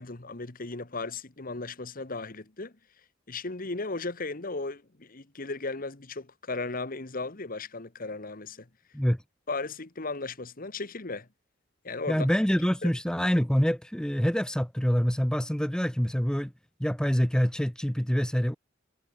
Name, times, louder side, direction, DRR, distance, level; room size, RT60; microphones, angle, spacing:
voice 1, 0.0-2.7 3.3-8.7 9.5-11.3 11.8-12.3 12.8-12.9, left 3 dB, 45° left, 1.5 m, -36 dB
voice 2, 12.1-16.5 16.8-18.6, equal, 5° left, 0.8 m, -26 dB
head